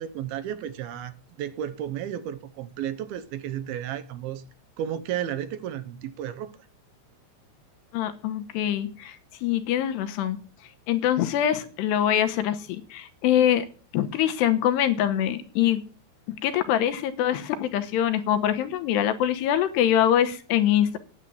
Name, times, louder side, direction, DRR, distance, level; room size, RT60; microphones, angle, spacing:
voice 1, 0.0-4.4 4.8-6.6, right 10 dB, 75° right, 2.5 m, -33 dB
voice 2, 7.9-10.4 10.9-13.7 13.9-15.8 16.4-21.0, left 10 dB, 85° left, 3.2 m, -24 dB
9.9 x 8.5 x 7.6 m
omnidirectional pair, 4.8 m